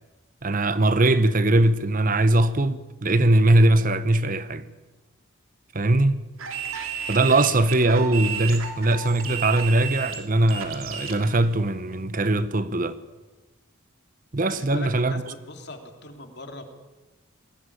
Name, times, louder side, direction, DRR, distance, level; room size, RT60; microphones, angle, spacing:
voice 1, 0.4-4.7 5.7-6.2 7.1-13.0 14.3-15.2, right 2 dB, 40° right, 0.9 m, -21 dB
sound 1, 6.4-11.2, right 7 dB, 80° right, 3.1 m, -33 dB
voice 2, 14.5-15.2 15.5-16.6, left 2 dB, 50° left, 3.0 m, -40 dB
20.5 x 16.5 x 9.9 m
head